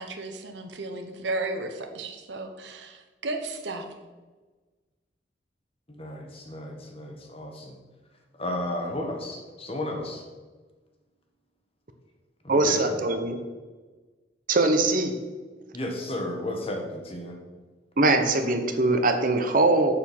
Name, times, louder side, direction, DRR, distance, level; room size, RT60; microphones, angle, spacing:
voice 1, 0.0-4.0, right 2 dB, 80° right, 6 dB, 1.0 m, -34 dB
voice 2, 5.9-7.8 8.4-10.2 12.4-13.1 15.7-17.4, left 1 dB, 35° left, 2 dB, 1.4 m, -33 dB
voice 3, 12.5-13.4 14.5-15.1 18.0-19.9, right 2 dB, 50° right, 6 dB, 0.9 m, -22 dB
6.9 x 6.9 x 5.5 m, 1.3 s
head